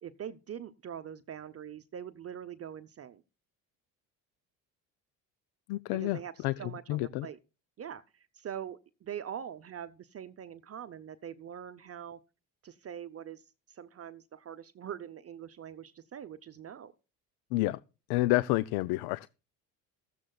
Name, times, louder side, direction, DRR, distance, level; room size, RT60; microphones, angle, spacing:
voice 1, 0.0-3.2 5.9-7.4 7.8-12.2 12.6-16.9, right 9 dB, 35° right, 0.7 m, -43 dB
voice 2, 5.7-7.3 17.5-17.8 18.1-19.3, left 18 dB, 75° left, 0.5 m, -29 dB
16.0 x 13.5 x 2.3 m
supercardioid pair, 75°, 40 cm